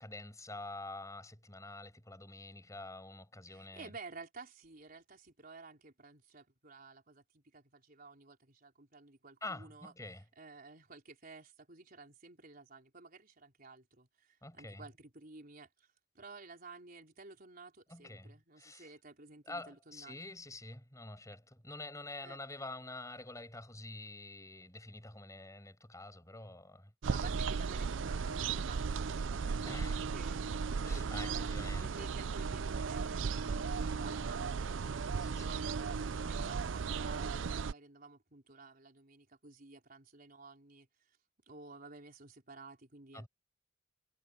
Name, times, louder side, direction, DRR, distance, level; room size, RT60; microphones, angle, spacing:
voice 1, 0.0-3.9 9.4-10.2 14.4-14.8 17.9-18.9 19.5-26.9 27.2-27.3 29.7-30.0 30.8-32.1 35.2-35.6 43.1-43.3, left 2 dB, 15° left, 7.7 m, -47 dB
voice 2, 3.5-9.9 10.4-15.9 16.1-20.2 22.2-22.4 27.0-34.7 35.1-40.9 41.5-43.3, right 3 dB, 50° right, 4.3 m, -53 dB
sound 1, 27.0-37.7, right 5 dB, 80° right, 0.5 m, -36 dB
head